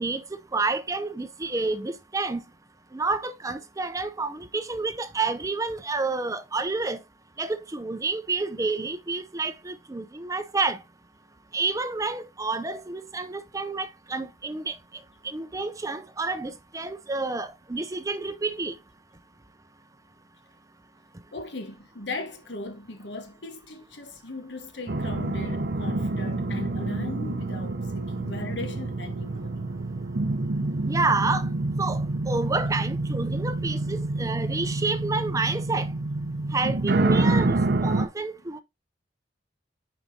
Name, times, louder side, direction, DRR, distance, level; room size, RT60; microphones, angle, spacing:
voice 1, 0.0-2.4 2.9-7.0 7.4-10.8 11.5-14.8 15.2-18.8 30.9-31.5 31.8-35.9 36.5-38.6, right 3 dB, 20° right, 0.6 m, -29 dB
voice 2, 21.3-29.5, left 2 dB, 80° left, 1.4 m, -38 dB
sound 1, 24.9-38.1, right 2 dB, 60° right, 0.7 m, -27 dB
9.0 x 4.7 x 2.8 m
head